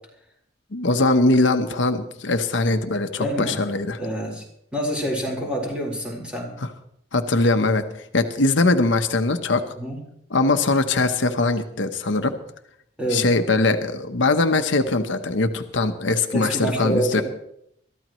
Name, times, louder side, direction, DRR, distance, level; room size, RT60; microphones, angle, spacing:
voice 1, 0.7-4.0 7.1-9.6 10.3-12.3 13.1-17.2, left 2 dB, 80° left, 7 dB, 1.0 m, -21 dB
voice 2, 3.2-3.6 4.0-4.4 4.7-6.5 9.8-10.0 13.0-13.3 16.3-17.2, right 1 dB, 5° right, -2 dB, 4.3 m, -26 dB
22.5 x 13.5 x 3.1 m, 0.71 s
head